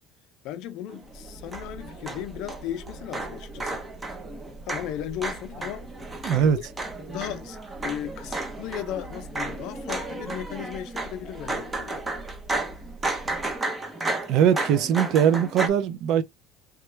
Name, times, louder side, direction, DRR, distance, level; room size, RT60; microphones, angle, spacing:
voice 1, 0.4-3.8 4.6-5.9 6.3-6.7 7.1-12.1 14.0-14.2, left 11 dB, 60° left, 0.5 m, -36 dB
sound 1, 0.9-15.7, right 2 dB, 15° right, 0.6 m, -33 dB
sound 2, 1.1-13.6, right 2 dB, 30° right, 1.1 m, -45 dB
voice 2, 6.2-6.6 14.3-16.2, right 8 dB, 55° right, 0.4 m, -21 dB
3.1 x 2.2 x 3.2 m
cardioid pair, 145°, 0 cm